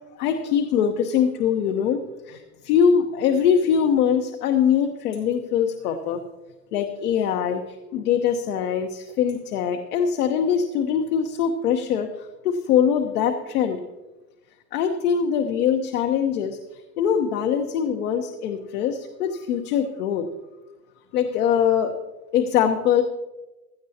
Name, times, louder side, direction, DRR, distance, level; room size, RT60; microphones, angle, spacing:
voice 1, 0.2-2.0 2.3-6.2 6.7-7.6 7.9-12.1 12.4-13.8 14.7-16.6 17.0-20.3 21.1-21.9 22.3-23.0, left 8 dB, 70° left, 4 dB, 1.1 m, -22 dB
16.5 x 12.5 x 2.9 m, 1.1 s
hypercardioid pair, 110°, 46 cm